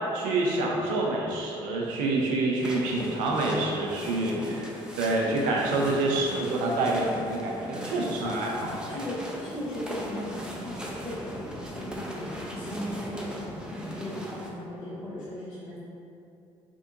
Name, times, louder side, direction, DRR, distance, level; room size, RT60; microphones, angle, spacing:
voice 1, 0.1-4.7 5.0-8.8, right 2 dB, 70° right, -2 dB, 0.5 m, -27 dB
sound 1, 2.6-14.5, equal, 5° right, 0.5 m, -39 dB
sound 2, 5.6-5.9 8.6-9.0 9.5-9.6, equal, 30° right, 0.9 m, -44 dB
voice 2, 8.9-15.8, left 1 dB, 70° left, -10 dB, 1.3 m, -37 dB
3.5 x 2.6 x 2.5 m, 2.7 s
hypercardioid pair, 50°, 14 cm